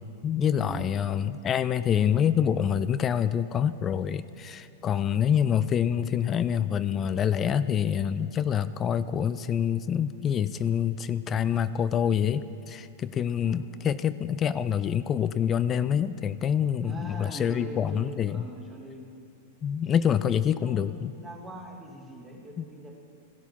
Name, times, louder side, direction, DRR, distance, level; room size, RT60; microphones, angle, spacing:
voice 1, 0.2-18.4 19.6-21.1 22.6-22.7, left 8 dB, 30° left, 15 dB, 0.4 m, -26 dB
voice 2, 16.8-19.1 19.8-22.9, equal, 10° right, 0 dB, 2.2 m, -43 dB
15.5 x 12.5 x 5.7 m, 2.6 s
figure-of-eight pair, 100°, 0 cm